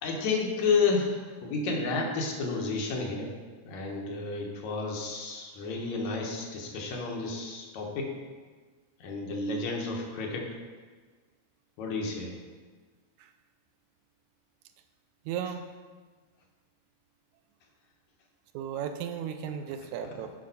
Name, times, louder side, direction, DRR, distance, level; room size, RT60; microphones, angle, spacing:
voice 1, 0.0-3.3 3.6-8.1 9.0-10.5 11.8-12.4, left 4 dB, 75° left, 0 dB, 2.4 m, -31 dB
voice 2, 15.3-15.7 18.5-20.3, right 8 dB, 85° right, 7 dB, 1.9 m, -35 dB
8.6 x 5.3 x 5.6 m, 1.4 s
omnidirectional pair, 3.4 m